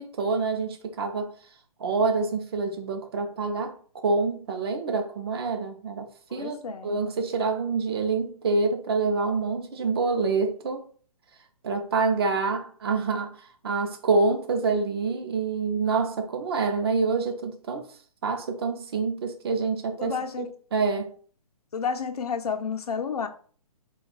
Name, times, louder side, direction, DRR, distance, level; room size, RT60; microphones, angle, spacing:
voice 1, 0.0-1.3 1.8-10.9 11.6-17.9 18.2-21.1, right 4 dB, 40° right, 0.6 m, -27 dB
voice 2, 6.3-7.0 20.0-20.5 21.7-23.3, left 6 dB, 90° left, 0.6 m, -31 dB
2.7 x 2.3 x 3.8 m
hypercardioid pair, 160°, 19 cm